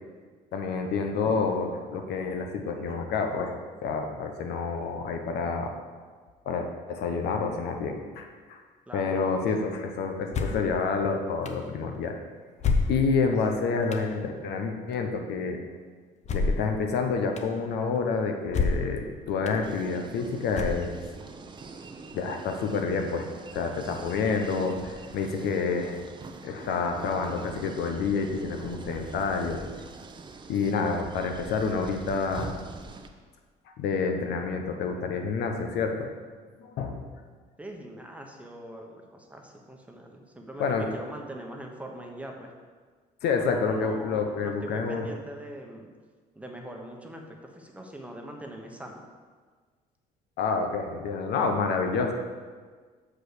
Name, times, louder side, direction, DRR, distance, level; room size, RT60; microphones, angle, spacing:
voice 1, 0.5-5.8 6.4-8.6 8.9-12.1 12.9-15.6 16.3-21.0 22.1-23.3 23.5-26.0 26.4-29.6 30.5-32.5 33.8-36.1 36.6-37.0 40.6-40.8 43.2-45.1 50.4-52.1, left 4 dB, 75° left, 4 dB, 1.0 m, -28 dB
voice 2, 8.9-9.2 37.6-42.5 43.4-45.9 46.3-49.0, right 1 dB, 10° right, 1 dB, 1.0 m, -42 dB
sound 1, 10.3-10.7 11.5-11.6 12.6-13.3 13.9-14.1 16.2-16.7 17.4-17.5 18.5-19.0 19.5-19.6 20.5-21.1, left 4 dB, 40° left, 0.8 m, -27 dB
sound 2, 19.6-33.1, right 3 dB, 25° right, 0.6 m, -44 dB
6.4 x 5.0 x 6.6 m, 1.5 s
cardioid pair, 110°, 17 cm